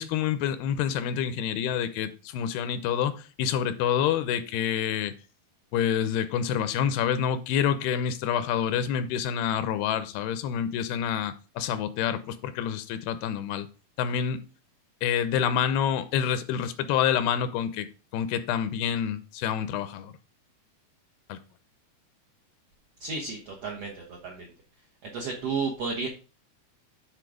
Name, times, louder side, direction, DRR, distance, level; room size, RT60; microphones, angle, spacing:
voice 1, 0.0-5.1 5.7-13.7 14.0-14.4 15.0-17.9 18.1-20.1 21.3-21.4, left 9 dB, 85° left, 12 dB, 2.7 m, -27 dB
voice 2, 23.0-24.4 25.0-26.1, right 4 dB, 70° right, -2 dB, 1.5 m, -32 dB
8.9 x 3.9 x 4.9 m, 0.34 s
omnidirectional pair, 4.5 m